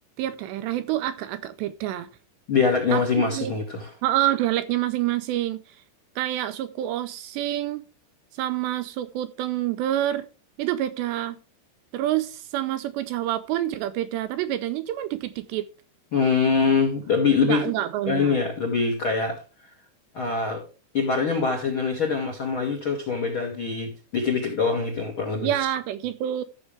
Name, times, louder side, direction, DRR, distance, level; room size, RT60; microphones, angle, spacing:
voice 1, 0.2-2.1 2.9-3.5 4.0-5.8 6.2-7.9 8.3-10.3 10.6-11.4 11.9-15.7 17.4-18.4 25.4-26.4, right 13 dB, 85° right, 2.6 m, -27 dB
voice 2, 2.5-3.9 16.1-17.7 18.1-19.4 20.1-20.6 20.9-25.5, left 5 dB, 55° left, 1.4 m, -24 dB
14.5 x 6.4 x 3.3 m
omnidirectional pair, 5.4 m